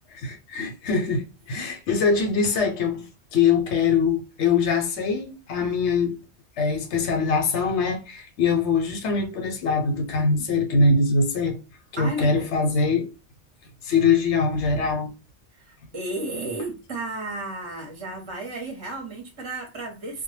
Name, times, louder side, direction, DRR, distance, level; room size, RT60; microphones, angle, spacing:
voice 1, 0.1-6.2 6.6-11.6 11.9-13.1 13.8-15.1, left 4 dB, 85° left, 0.9 m, -23 dB
voice 2, 12.0-12.6 15.5-20.2, right 2 dB, 30° right, 0.5 m, -33 dB
2.0 x 2.0 x 3.0 m
omnidirectional pair, 1.2 m